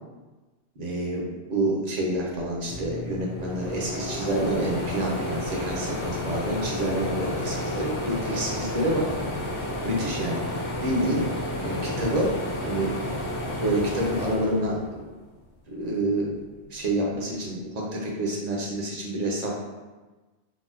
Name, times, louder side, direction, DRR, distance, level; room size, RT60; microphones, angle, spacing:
voice 1, 0.8-9.1 9.8-10.4 10.8-11.2 11.6-12.3 12.6-12.9 13.6-15.1 15.7-16.3 16.7-19.5, right 1 dB, 45° right, -3 dB, 0.6 m, -28 dB
sound 1, 2.4-2.5 2.7-15.3 15.7-16.9, left 1 dB, 80° left, 0.9 m, -31 dB
3.9 x 2.1 x 2.5 m, 1.2 s
omnidirectional pair, 1.1 m